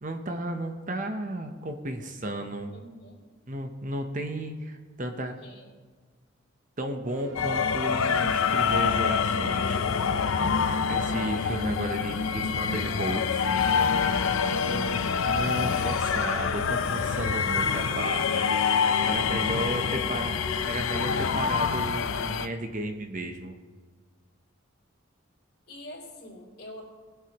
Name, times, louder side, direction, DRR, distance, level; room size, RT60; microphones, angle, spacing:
voice 1, 0.0-2.7 3.5-5.3 6.8-9.8 10.9-13.5 14.6-18.5 19.0-20.3 20.7-23.6, right 1 dB, 40° right, 5 dB, 0.8 m, -34 dB
voice 2, 2.7-3.3 5.4-5.7 12.2-12.8 19.1-20.3 25.7-26.8, left 1 dB, 50° left, -4 dB, 3.4 m, -46 dB
sound 1, 7.1-19.6, right 3 dB, 70° right, 1.7 m, -47 dB
sound 2, 7.3-22.5, left 6 dB, 75° left, 0.5 m, -26 dB
sound 3, 15.0-21.3, left 1 dB, 5° right, 0.5 m, -42 dB
21.0 x 8.1 x 3.0 m, 1.5 s
head